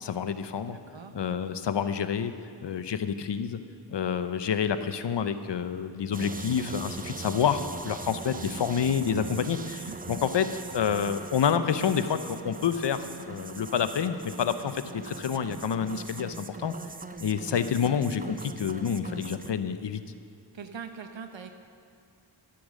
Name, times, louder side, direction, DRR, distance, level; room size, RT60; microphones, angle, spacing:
voice 1, 0.0-0.8 1.1-2.3 2.6-3.6 3.9-16.7 17.2-20.0, left 7 dB, 65° left, 11 dB, 0.7 m, -28 dB
voice 2, 0.6-1.1 9.8-10.0 20.5-21.6, right 6 dB, 70° right, 7 dB, 1.1 m, -42 dB
sound 1, 6.1-19.5, right 4 dB, 20° right, 0.5 m, -41 dB
11.5 x 8.5 x 6.3 m, 2.4 s
cardioid pair, 60°, 47 cm